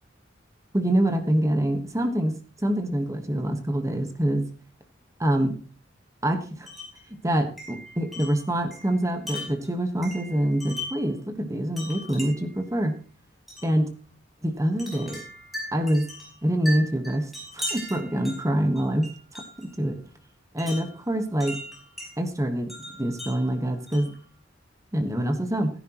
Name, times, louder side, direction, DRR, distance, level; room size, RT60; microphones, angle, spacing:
voice 1, 0.7-2.3 2.6-4.4 5.2-5.5 6.2-6.7 7.2-12.9 13.6-13.9 14.4-15.2 15.7-16.0 16.4-20.0 20.5-21.6 22.2-24.1 24.9-25.7, right 1 dB, 15° right, 6 dB, 1.3 m, -25 dB
Wind chime, 6.7-7.0 7.6-11.1 11.8-12.6 13.5-13.7 14.8-19.7 20.6-22.1 22.7-24.2, left 1 dB, ahead, 5.1 m, -39 dB
16.0 x 10.5 x 3.0 m, 0.40 s
head